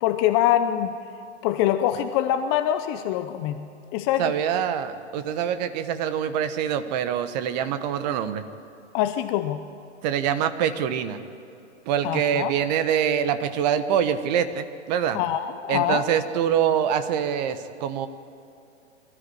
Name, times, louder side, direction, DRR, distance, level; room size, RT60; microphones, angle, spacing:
voice 1, 0.0-1.0 1.4-4.3 8.9-9.6 12.0-12.5 15.1-16.0, left 11 dB, 20° left, 9 dB, 0.6 m, -24 dB
voice 2, 4.2-8.4 10.0-11.2 11.9-15.2 15.7-18.1, right 8 dB, 35° right, 11 dB, 1.2 m, -25 dB
22.5 x 13.5 x 9.7 m, 2.7 s
hypercardioid pair, 125°, 36 cm